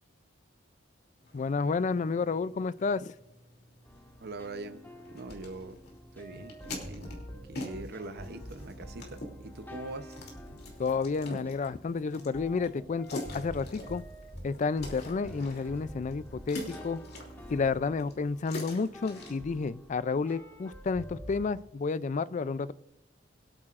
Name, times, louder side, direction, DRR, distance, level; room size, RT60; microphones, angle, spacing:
sound 1, 1.2-19.4, left 1 dB, 55° left, 2.9 m, -46 dB
voice 1, 1.3-3.1 10.8-14.0 14.4-17.0 17.5-22.7, left 4 dB, 40° left, 18 dB, 0.4 m, -31 dB
sound 2, 3.8-21.5, equal, 10° left, 1.6 m, -47 dB
voice 2, 4.2-4.8 5.1-5.8 6.1-7.2 7.5-10.2, right 2 dB, 60° right, 10 dB, 0.8 m, -42 dB
23.5 x 8.7 x 2.5 m, 0.93 s
head